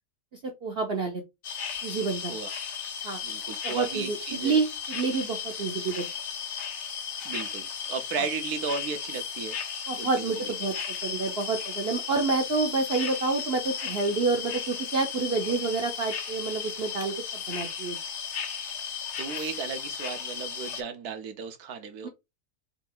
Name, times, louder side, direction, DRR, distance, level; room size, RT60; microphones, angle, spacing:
voice 1, 0.3-1.2 1.8-2.3 3.0-3.2 3.6-6.1 9.9-18.0 22.0-22.1, right 4 dB, 50° right, 0.9 m, -28 dB
sound 1, 1.4-20.8, left 7 dB, 55° left, 0.9 m, -35 dB
voice 2, 3.2-4.6 7.2-9.6 10.0-10.5 19.2-22.1, right 5 dB, 75° right, 1.3 m, -35 dB
4.3 x 2.6 x 3.6 m
omnidirectional pair, 1.7 m